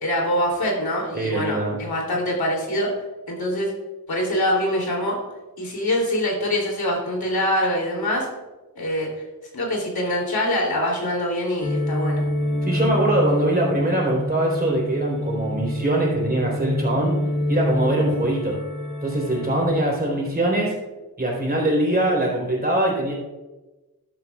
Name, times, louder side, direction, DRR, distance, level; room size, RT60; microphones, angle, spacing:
voice 1, 0.0-2.9 3.3-3.7 4.1-5.2 5.6-8.3 8.7-9.1 9.5-12.2, left 1 dB, 90° left, -1 dB, 3.1 m, -24 dB
voice 2, 1.1-1.8 12.6-17.1 17.5-18.6 19.0-20.8 21.2-23.1, right 1 dB, 25° right, -3 dB, 3.8 m, -22 dB
sound 1, 11.6-19.8, left 1 dB, 55° left, 1.4 m, -26 dB
12.0 x 11.5 x 2.4 m, 1.1 s
wide cardioid pair, 110°, 36 cm